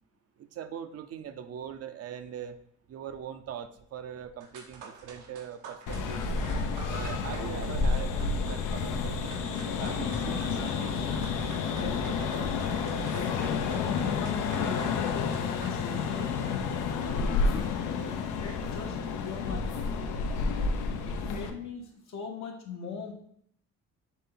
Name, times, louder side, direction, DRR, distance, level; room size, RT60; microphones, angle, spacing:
voice 1, 0.4-2.6 2.9-6.3 6.9-11.0, right 9 dB, 55° right, 10 dB, 0.5 m, -42 dB
sound 1, 4.4-17.4, right 5 dB, 90° right, 0.9 m, -50 dB
sound 2, 5.9-21.5, left 5 dB, 90° left, 0.6 m, -30 dB
voice 2, 11.6-12.7 13.1-17.7 18.4-20.0 21.1-23.1, left 5 dB, 65° left, 1 dB, 0.8 m, -41 dB
4.1 x 3.3 x 3.7 m, 0.67 s
cardioid pair, 90°, 30 cm